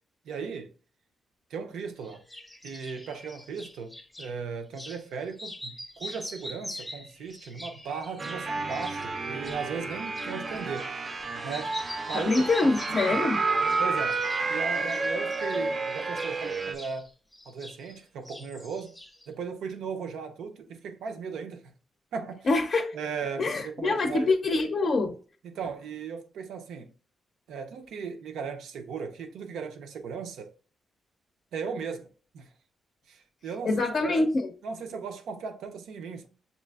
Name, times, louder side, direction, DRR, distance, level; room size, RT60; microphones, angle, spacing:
voice 1, 0.2-0.7 1.5-2.2 2.6-10.9 11.4-11.8 12.1-12.7 13.1-13.2 13.8-14.2 14.5-17.1 17.5-19.0 19.3-21.7 22.1-22.5 22.9-24.3 25.4-26.9 27.5-30.5 31.5-32.1 32.3-32.5 33.1-34.1 34.6-36.3, right 5 dB, 90° right, 0.6 m, -37 dB
sound 1, 2.0-4.3 4.7-5.0 5.3-11.2 11.5-13.3 13.6-14.5 14.7-18.0 18.2-19.3, left 1 dB, 5° left, 0.7 m, -43 dB
sound 2, 8.2-16.7, right 3 dB, 40° right, 0.5 m, -30 dB
voice 2, 12.1-13.4 22.5-22.9 23.4-25.1 33.6-34.3, left 3 dB, 45° left, 0.5 m, -25 dB
6.7 x 2.5 x 2.3 m
cardioid pair, 110°, 0 cm